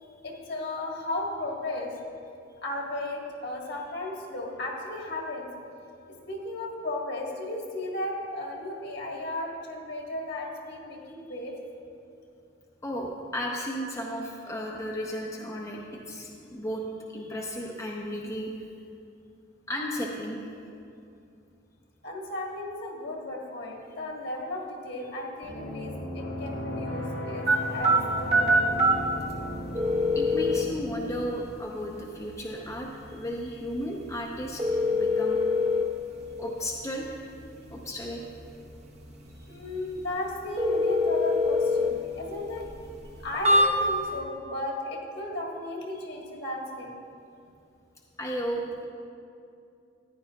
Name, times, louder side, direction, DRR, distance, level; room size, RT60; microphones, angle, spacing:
voice 1, 0.2-1.9 2.6-5.5 6.3-11.5 22.0-28.7 39.5-42.7 43.2-46.9, left 1 dB, 60° left, -1 dB, 1.5 m, -35 dB
voice 2, 12.8-16.9 17.1-18.5 19.7-20.5 30.1-34.6 34.9-35.4 36.4-37.0 37.7-38.2 48.2-48.9, equal, 15° left, -2 dB, 0.7 m, -34 dB
sound 1, 25.4-31.3, left 1 dB, 80° left, 1.6 m, -36 dB
sound 2, 27.5-44.2, left 1 dB, 35° right, 1.1 m, -27 dB
14.0 x 10.0 x 2.4 m, 2.5 s
head